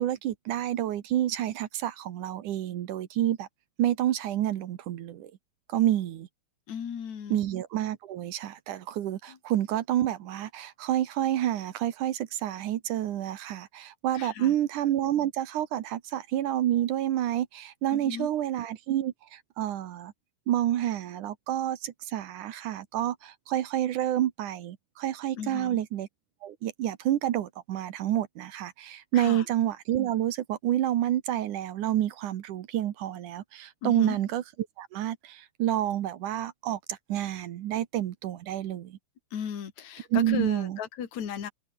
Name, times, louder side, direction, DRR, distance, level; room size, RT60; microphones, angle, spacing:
voice 1, 0.0-3.5 3.8-5.3 5.7-6.3 7.3-20.1 20.5-26.1 26.4-34.4 34.8-39.0 40.1-40.8, right 12 dB, 70° right, 2.6 m, -29 dB
voice 2, 6.7-7.4 9.3-9.4 14.1-14.6 17.9-18.3 25.4-25.8 29.1-29.4 33.8-34.2 39.3-41.5, left 8 dB, 55° left, 3.8 m, -36 dB
open air
omnidirectional pair, 3.9 m